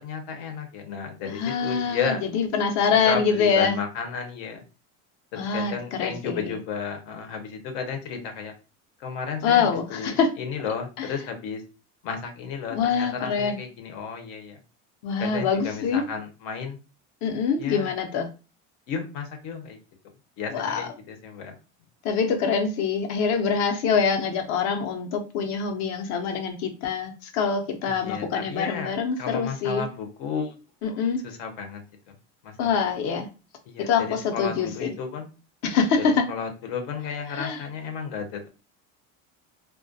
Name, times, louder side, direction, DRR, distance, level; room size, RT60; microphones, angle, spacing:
voice 1, 0.0-2.2 3.1-4.6 5.3-8.5 9.0-11.6 12.0-14.6 15.2-16.8 17.6-17.9 18.9-19.8 20.4-21.5 27.9-30.6 31.2-31.8 32.4-32.8 33.7-35.3 36.0-38.5, left 6 dB, 80° left, 5 dB, 0.8 m, -33 dB
voice 2, 1.4-3.7 5.4-6.5 9.4-10.3 11.0-11.1 12.7-13.6 15.0-16.0 17.2-18.3 20.5-20.9 22.0-29.8 30.8-31.2 32.6-33.3 33.9-34.9 35.6-36.3 37.3-37.6, left 6 dB, 50° left, 5 dB, 0.6 m, -25 dB
2.3 x 2.1 x 2.5 m, 0.32 s
cardioid pair, 150°, 35 cm